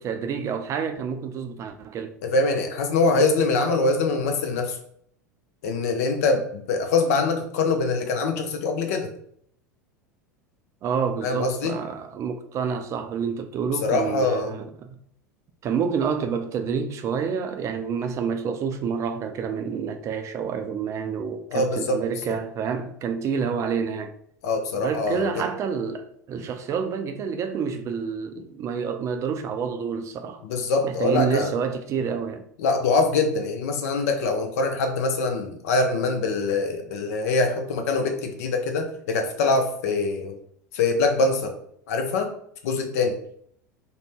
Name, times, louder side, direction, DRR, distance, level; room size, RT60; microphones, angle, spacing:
voice 1, 0.0-2.1 10.8-15.0 15.6-24.1 24.7-30.4 30.8-32.4, right 6 dB, 30° right, 0.3 m, -28 dB
voice 2, 2.2-4.8 5.6-9.1 11.2-11.8 13.8-14.5 21.5-22.0 24.4-25.4 30.4-31.5 32.6-40.3 40.7-41.5 41.9-42.3 42.6-43.2, left 3 dB, 60° left, 0.6 m, -23 dB
2.6 x 2.1 x 3.2 m
figure-of-eight pair, 80°, 9 cm